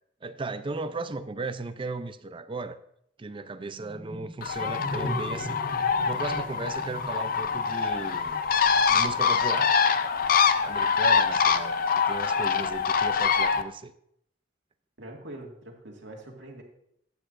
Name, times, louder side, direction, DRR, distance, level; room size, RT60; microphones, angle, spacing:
voice 1, 0.2-2.8 3.2-5.6 6.1-8.4 8.9-9.8 10.6-13.9, right 3 dB, 30° right, 0.5 m, -36 dB
sound 1, 3.8-9.1, equal, 25° left, 1.0 m, -39 dB
Bird, 4.4-13.6, left 6 dB, 50° left, 0.5 m, -24 dB
voice 2, 15.0-16.6, right 1 dB, 80° right, 1.9 m, -43 dB
12.5 x 8.6 x 2.5 m
head